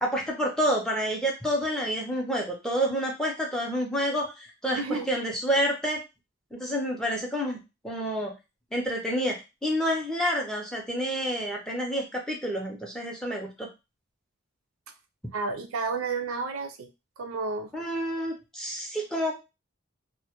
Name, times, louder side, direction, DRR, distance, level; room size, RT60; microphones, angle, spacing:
voice 1, 0.0-4.8 5.1-6.0 6.5-7.6 7.8-8.3 8.7-13.7 17.7-19.3, equal, 5° left, 0 dB, 0.4 m, -28 dB
voice 2, 4.7-5.1 15.3-16.9 17.2-17.7, right 4 dB, 75° right, 6 dB, 0.4 m, -31 dB
2.1 x 2.0 x 2.8 m, 0.26 s
head